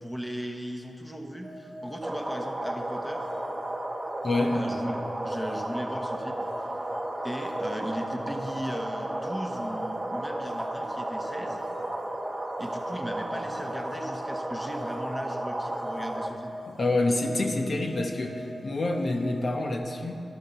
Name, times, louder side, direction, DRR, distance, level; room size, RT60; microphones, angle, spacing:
voice 1, 0.0-3.4 4.5-6.9 7.2-11.6 12.6-16.6, equal, 10° left, 3 dB, 1.3 m, -37 dB
sound 1, 1.4-19.8, equal, 85° left, 3.7 m, -42 dB
sound 2, 2.0-16.3, right 1 dB, 20° right, 1.1 m, -34 dB
voice 2, 4.2-4.6 16.7-20.2, left 2 dB, 50° left, 3 dB, 1.0 m, -27 dB
13.0 x 11.5 x 5.5 m, 2.8 s
cardioid pair, 70°, 0 cm